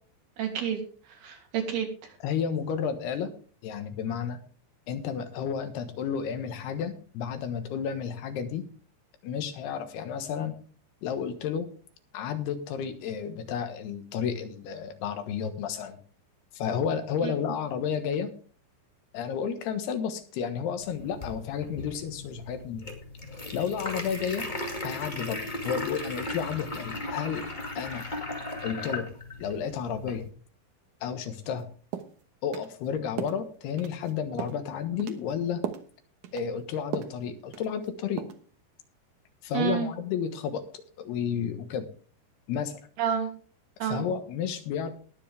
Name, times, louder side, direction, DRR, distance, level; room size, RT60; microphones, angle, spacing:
voice 1, 0.4-0.8 1.2-1.9 17.2-17.3 39.5-39.9 43.0-43.3 43.8-44.1, right 8 dB, 80° right, 2 dB, 4.6 m, -28 dB
voice 2, 2.2-3.3 3.6-4.4 4.9-8.6 9.2-10.5 11.0-11.7 12.1-16.0 16.5-18.3 19.1-22.9 23.5-24.4 24.8-27.4 27.8-28.0 28.6-29.1 29.4-30.3 31.0-31.7 32.4-35.6 36.3-38.3 39.4-40.6 41.0-41.8 42.5-42.8 43.8-44.9, left 7 dB, 90° left, 9 dB, 3.4 m, -31 dB
sound 1, 20.8-30.3, left 2 dB, 20° left, 1.4 m, -37 dB
sound 2, 31.5-31.6 31.9-32.2 32.5-32.7 33.2-33.4 33.8-34.1 34.4-34.6 35.0-35.2 35.6-35.9 36.2-36.5 36.9-37.2 37.5-37.9 38.2-38.4, right 9 dB, 65° right, 2.1 m, -36 dB
20.0 x 7.3 x 3.4 m, 0.42 s
omnidirectional pair, 4.5 m